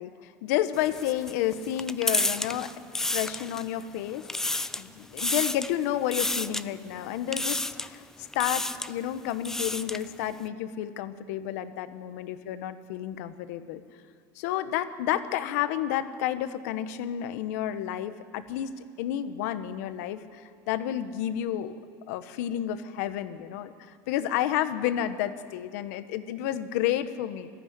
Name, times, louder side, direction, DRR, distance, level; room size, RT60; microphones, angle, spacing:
voice 1, 0.0-2.7 3.1-8.0 8.3-13.8 14.4-21.8 22.1-23.7 24.1-27.5, left 11 dB, 80° left, 11 dB, 1.2 m, -31 dB
sound 1, 0.7-3.8 4.1-4.9 5.2-5.7 6.1-6.6 7.3-7.9 8.3-8.9 9.3-10.1, left 2 dB, 5° left, 0.5 m, -30 dB
20.5 x 14.5 x 9.6 m, 2.1 s
supercardioid pair, 135°, 9 cm